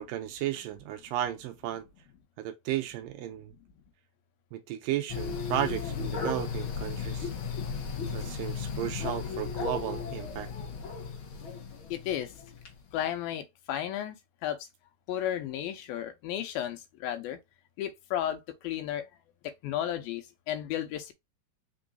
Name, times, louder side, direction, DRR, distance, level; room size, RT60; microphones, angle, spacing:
voice 1, 0.0-1.9 2.4-3.5 4.5-7.3 8.1-10.5, right 12 dB, 80° right, 2.2 m, -34 dB
sound 1, 5.1-12.7, left 5 dB, 65° left, 1.3 m, -35 dB
voice 2, 11.9-12.3 12.9-14.2 14.4-14.7 15.1-17.4 17.8-19.1 19.4-21.1, left 11 dB, 85° left, 2.6 m, -33 dB
5.4 x 3.9 x 2.5 m
omnidirectional pair, 4.2 m